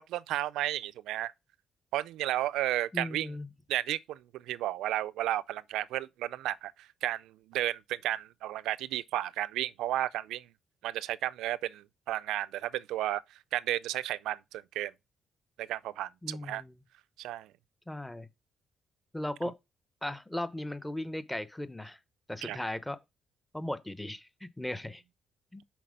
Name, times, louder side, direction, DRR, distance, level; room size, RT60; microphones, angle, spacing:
voice 1, 0.0-1.3 1.9-3.3 3.7-10.5 10.8-13.2 13.5-14.9 15.6-16.6 17.2-17.5 22.4-22.6, right 14 dB, 90° right, 0.3 m, -33 dB
voice 2, 2.9-3.5 16.2-16.8 17.9-18.3 19.1-19.6 20.0-22.0 22.3-23.0 23.5-25.0 25.5-25.6, left 1 dB, 5° left, 0.7 m, -37 dB
5.9 x 4.0 x 5.1 m
cardioid pair, 90°, 0 cm